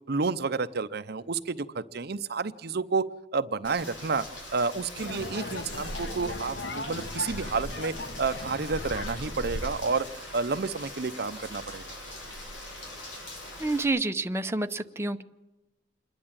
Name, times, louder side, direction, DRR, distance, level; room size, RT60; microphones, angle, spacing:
voice 1, 0.1-4.2 4.5-10.1 10.3-11.8, right 4 dB, 55° right, 11 dB, 0.7 m, -30 dB
Rain, 3.6-13.8, left 1 dB, 80° left, 6.7 m, -42 dB
sound 1, 4.9-9.9, left 1 dB, 60° left, 1.5 m, -37 dB
voice 2, 13.6-15.2, right 2 dB, 15° right, 7 dB, 0.7 m, -28 dB
27.5 x 11.0 x 8.8 m, 1.1 s
head